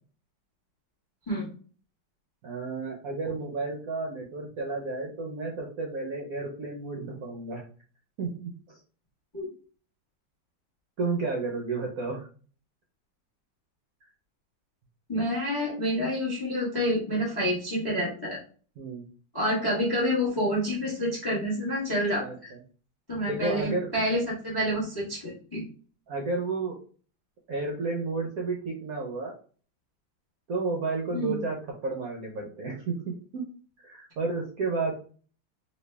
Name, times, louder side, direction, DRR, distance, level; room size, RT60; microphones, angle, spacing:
voice 1, 2.4-7.6 8.2-8.8 11.0-12.3 14.0-14.1 18.8-19.1 22.2-22.4 23.3-23.9 26.1-26.8 27.5-29.3 30.5-33.4 33.8-34.9, right 3 dB, 70° right, 0 dB, 0.9 m, -32 dB
voice 2, 15.1-18.4 19.3-22.5 23.1-25.6 31.1-31.4, equal, 25° left, -2 dB, 0.5 m, -28 dB
3.1 x 2.7 x 3.2 m, 0.41 s
omnidirectional pair, 2.1 m